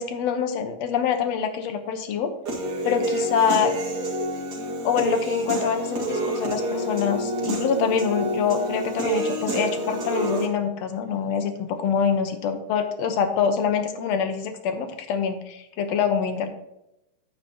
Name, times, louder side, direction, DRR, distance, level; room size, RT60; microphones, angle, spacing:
voice 1, 0.0-2.3 2.8-3.8 4.8-16.5, left 7 dB, 65° left, 8 dB, 1.7 m, -25 dB
Human voice / Piano, 2.5-10.5, right 1 dB, 35° right, 2.0 m, -28 dB
10.0 x 8.9 x 2.9 m, 0.87 s
omnidirectional pair, 4.0 m